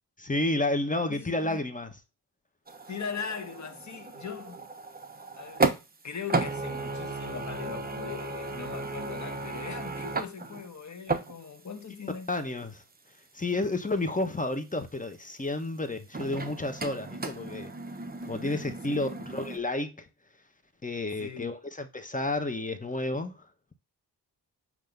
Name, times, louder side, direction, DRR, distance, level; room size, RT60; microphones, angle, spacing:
voice 1, 0.2-1.9 12.3-12.8 13.3-17.7 18.2-20.1 20.8-23.4, left 2 dB, 20° left, 1.2 m, -31 dB
voice 2, 1.1-1.6 2.9-4.7 5.4-5.8 6.0-12.3 18.4-19.3 21.2-21.5, left 6 dB, 45° left, 1.4 m, -40 dB
sound 1, 2.7-6.0 6.3-11.8 12.1-12.2 16.1-19.6, right 3 dB, 20° right, 1.0 m, -34 dB
8.0 x 3.1 x 5.2 m
cardioid pair, 95°, 40 cm